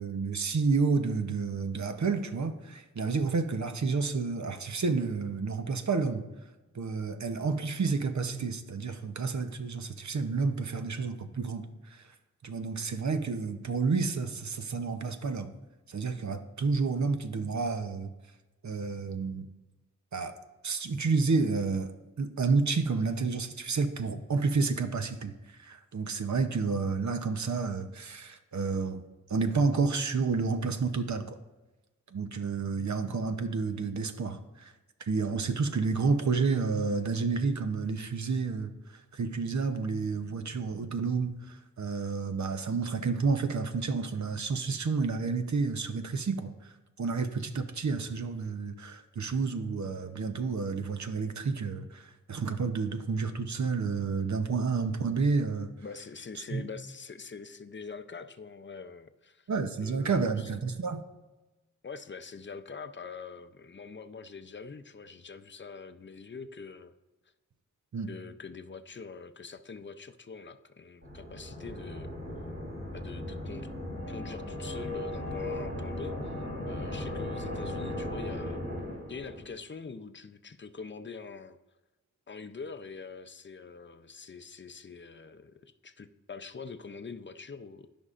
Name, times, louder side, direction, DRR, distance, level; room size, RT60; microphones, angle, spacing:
voice 1, 0.0-6.3 6.7-12.0 12.4-15.5 15.9-18.1 18.6-19.5 20.1-20.4 20.6-29.0 29.3-31.3 32.1-34.7 35.0-46.7 47.0-55.7 56.5-56.6 59.5-61.0 67.9-68.1, right 4 dB, 60° right, 9 dB, 0.8 m, -30 dB
voice 2, 55.8-59.5 59.8-60.5 61.8-66.9 68.1-72.1 72.9-73.7 74.1-78.6 79.1-81.6 82.3-87.9, left 5 dB, 35° left, 10 dB, 0.6 m, -44 dB
sound 1, 71.0-79.5, left 1 dB, 40° right, 2.7 m, -37 dB
14.0 x 5.4 x 2.5 m, 1.1 s
cardioid pair, 45°, 33 cm